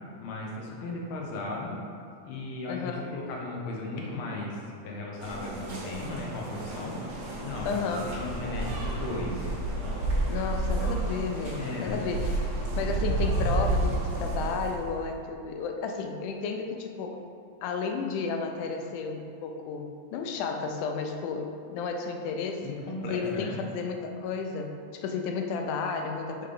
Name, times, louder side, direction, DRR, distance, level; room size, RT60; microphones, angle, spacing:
voice 1, 0.2-1.8 2.2-9.5 10.3-10.5 11.6-12.0 22.6-23.6, left 2 dB, 65° left, -2 dB, 1.3 m, -36 dB
voice 2, 2.7-3.1 7.7-8.2 10.3-17.2 17.6-22.8 23.1-26.5, left 5 dB, 85° left, 4 dB, 2.1 m, -33 dB
sound 1, 5.2-15.1, right 2 dB, 90° right, 0.7 m, -31 dB
5.4 x 3.9 x 5.0 m, 2.5 s
omnidirectional pair, 3.5 m